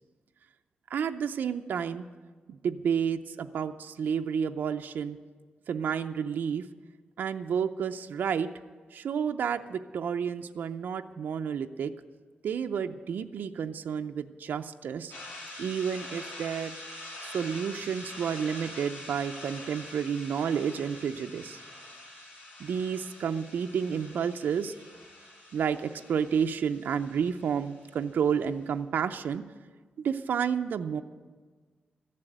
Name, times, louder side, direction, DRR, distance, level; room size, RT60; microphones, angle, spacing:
voice 1, 0.9-2.1 2.5-5.2 5.7-6.7 7.2-8.5 8.9-11.9 12.4-15.1 15.6-16.8 17.2-21.6 22.6-24.7 25.5-29.4 30.0-31.0, right 7 dB, 75° right, 6 dB, 0.5 m, -30 dB
sound 1, 15.1-28.4, left 1 dB, 75° left, 4.1 m, -45 dB
14.0 x 7.5 x 9.1 m, 1.4 s
wide cardioid pair, 170°, 3 cm